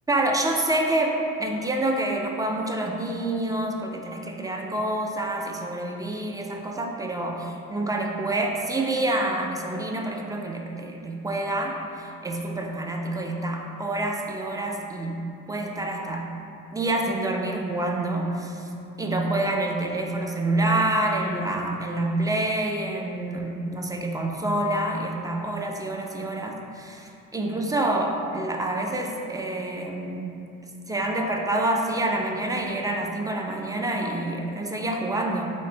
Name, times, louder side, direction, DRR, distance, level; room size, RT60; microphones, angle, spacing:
voice 1, 0.1-16.3 16.7-18.6 19.0-30.3 30.9-35.5, right 1 dB, 10° right, 2 dB, 0.4 m, -27 dB
3.6 x 3.2 x 4.3 m, 2.6 s
cardioid pair, 95°, 33 cm